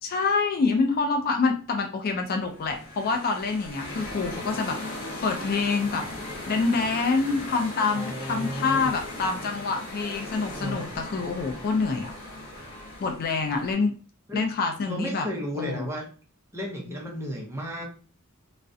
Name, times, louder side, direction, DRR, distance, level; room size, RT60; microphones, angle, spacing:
voice 1, 0.0-4.8 5.2-6.1 6.5-12.1 13.0-13.9 14.3-15.3 15.6-15.9, left 4 dB, 45° left, 4 dB, 0.3 m, -26 dB
sound 1, 2.4-13.7, left 1 dB, 75° left, 0.7 m, -38 dB
voice 2, 7.9-8.9 10.5-10.9 14.3-14.5 14.9-16.1 16.5-17.8, equal, 15° right, -1 dB, 0.6 m, -33 dB
2.3 x 2.1 x 2.5 m, 0.40 s
head